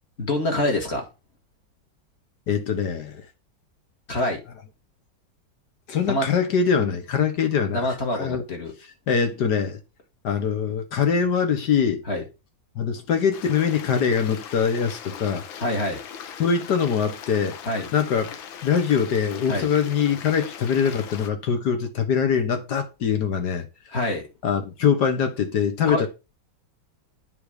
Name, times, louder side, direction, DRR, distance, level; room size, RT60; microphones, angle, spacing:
voice 1, 0.2-1.0 4.1-4.4 6.1-6.3 7.7-8.7 12.1-12.2 15.6-16.0 17.7-17.9 19.5-19.7 23.9-24.3 25.8-26.1, left 1 dB, 35° left, 2.3 m, -25 dB
voice 2, 2.5-3.2 5.9-7.9 8.2-8.4 9.1-9.8 10.2-12.0 12.8-15.4 16.4-17.6 17.9-18.3 18.6-23.7 24.4-26.1, left 7 dB, 60° left, 1.7 m, -23 dB
Stream, 13.3-21.3, left 8 dB, 85° left, 1.7 m, -39 dB
9.4 x 3.8 x 5.0 m
omnidirectional pair, 2.1 m